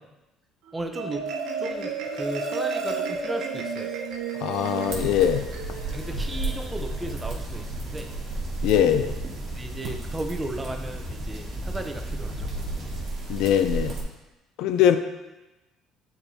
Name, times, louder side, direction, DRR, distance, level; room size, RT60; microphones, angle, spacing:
voice 1, 0.7-1.3 1.6-3.9 5.9-8.1 9.6-12.5, right 1 dB, 15° right, 4 dB, 0.7 m, -35 dB
Marimba xylophone, 0.7-7.3, right 5 dB, 75° right, 1.0 m, -32 dB
voice 2, 4.4-5.5 8.6-9.1 13.3-13.9 14.6-15.0, left 9 dB, 75° left, 9 dB, 0.4 m, -21 dB
sound 1, 4.9-13.1, equal, ahead, 1.2 m, -36 dB
sound 2, 4.9-14.0, right 2 dB, 50° right, 2.0 m, -34 dB
8.8 x 4.5 x 2.8 m, 1.0 s
supercardioid pair, 95°, 0 cm